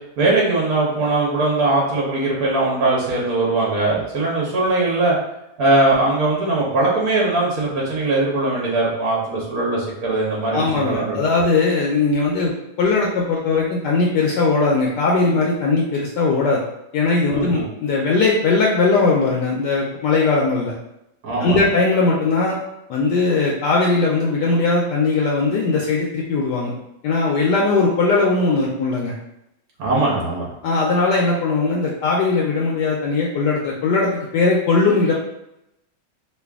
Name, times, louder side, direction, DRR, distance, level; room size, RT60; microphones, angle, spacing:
voice 1, 0.2-5.1 5.6-11.2 17.3-17.6 21.2-21.6 29.8-30.5, right 2 dB, 60° right, -4 dB, 1.2 m, -20 dB
voice 2, 10.5-16.6 16.9-20.7 21.4-22.6 22.9-26.7 27.0-29.1 30.6-35.1, left 3 dB, 75° left, -2 dB, 1.1 m, -19 dB
3.2 x 2.4 x 3.4 m, 0.85 s
omnidirectional pair, 2.0 m